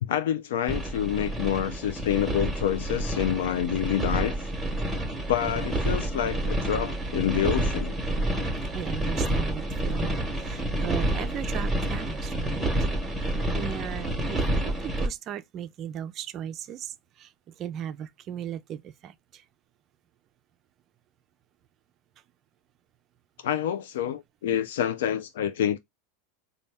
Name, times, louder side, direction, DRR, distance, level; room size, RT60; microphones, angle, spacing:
voice 1, 0.0-4.5 5.3-7.9 23.4-25.8, left 10 dB, 85° left, 0.4 m, -27 dB
sound 1, 0.7-15.1, right 1 dB, ahead, 1.0 m, -29 dB
voice 2, 8.7-12.7 13.1-13.2 13.5-19.4, right 10 dB, 35° right, 0.4 m, -37 dB
4.1 x 2.2 x 3.3 m
supercardioid pair, 150°, 0 cm